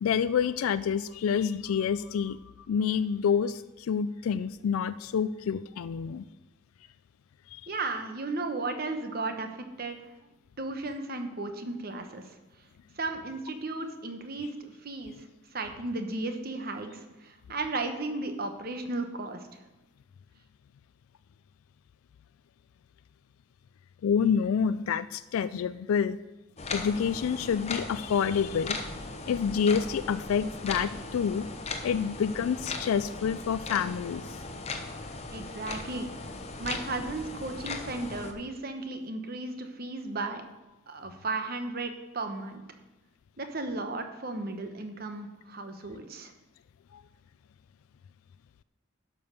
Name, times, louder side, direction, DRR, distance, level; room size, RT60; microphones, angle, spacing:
voice 1, 0.0-2.4 2.7-6.2 7.5-7.6 24.0-26.2 26.7-28.8 29.3-31.5 31.8-34.3 46.9-47.0, left 7 dB, 90° left, 14 dB, 0.3 m, -28 dB
voice 2, 7.7-9.5 9.8-10.0 10.6-12.2 13.0-15.2 15.5-19.5 35.3-36.1 36.6-40.4 40.9-42.6 43.4-46.3, right 2 dB, 45° right, 6 dB, 1.0 m, -35 dB
sound 1, 26.6-38.3, left 3 dB, 30° left, 0.9 m, -38 dB
11.5 x 5.4 x 6.7 m, 1.1 s
head